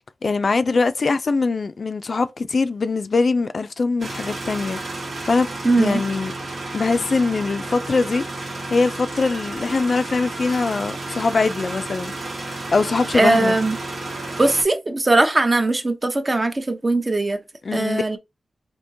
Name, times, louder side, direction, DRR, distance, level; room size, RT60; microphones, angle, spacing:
voice 1, 0.2-4.8 5.3-5.5 5.8-6.3 6.7-12.1 12.5-13.6 17.6-18.2, left 4 dB, 55° left, 0.3 m, -22 dB
sound 1, 4.0-14.6, right 2 dB, 80° right, 1.3 m, -32 dB
voice 2, 5.6-6.0 13.1-13.8 14.4-17.4 17.7-18.2, right 2 dB, 30° right, 0.7 m, -19 dB
3.5 x 2.8 x 2.6 m
wide cardioid pair, 75°, 0 cm